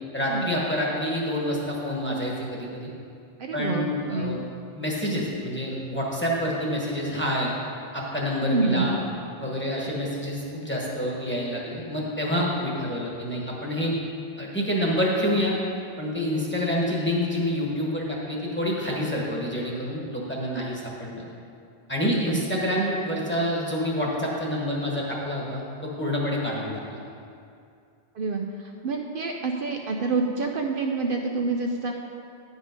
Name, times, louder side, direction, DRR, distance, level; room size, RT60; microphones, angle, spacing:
voice 1, 0.1-2.9 3.5-4.4 4.8-7.5 7.9-9.0 9.4-13.9 14.4-15.5 16.0-21.2 21.9-27.0, equal, 10° left, -4 dB, 1.4 m, -27 dB
voice 2, 3.4-3.8 4.1-4.4 8.5-8.9 22.0-22.4 28.1-31.9, right 3 dB, 65° right, 2 dB, 0.8 m, -27 dB
10.5 x 5.5 x 5.2 m, 2.5 s
omnidirectional pair, 1.0 m